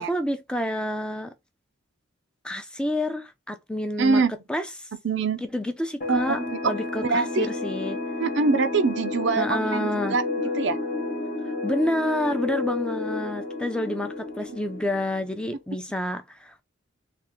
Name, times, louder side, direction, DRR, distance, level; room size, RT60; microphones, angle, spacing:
voice 1, 0.0-1.3 2.4-4.2 4.5-4.9 5.4-8.0 9.4-10.2 11.6-16.6, left 1 dB, 5° left, 0.5 m, -29 dB
voice 2, 4.0-4.3 5.0-5.4 6.1-6.7 7.0-7.5 8.2-10.2 10.6-10.8, right 4 dB, 65° right, 0.5 m, -24 dB
sound 1, 6.0-15.3, left 2 dB, 45° left, 1.0 m, -31 dB
3.4 x 2.5 x 4.4 m
head